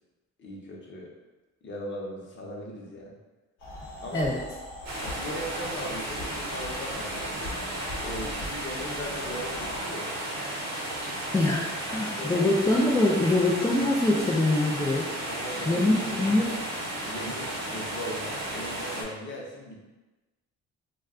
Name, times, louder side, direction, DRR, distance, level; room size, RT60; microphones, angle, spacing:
voice 1, 0.4-1.1 1.6-3.2 4.0-4.4 5.0-7.6 8.0-10.2 12.2-12.5 15.3-16.4 17.1-19.8, equal, 40° left, -2 dB, 0.8 m, -38 dB
sound 1, 3.6-9.8, left 1 dB, 70° left, 0.9 m, -42 dB
voice 2, 4.1-4.5 11.3-15.1 15.7-16.5, left 2 dB, 10° left, -3 dB, 0.3 m, -24 dB
sound 2, 4.8-19.0, right 1 dB, 60° right, 0.8 m, -34 dB
2.3 x 2.2 x 3.5 m, 1.1 s
cardioid pair, 90°, 30 cm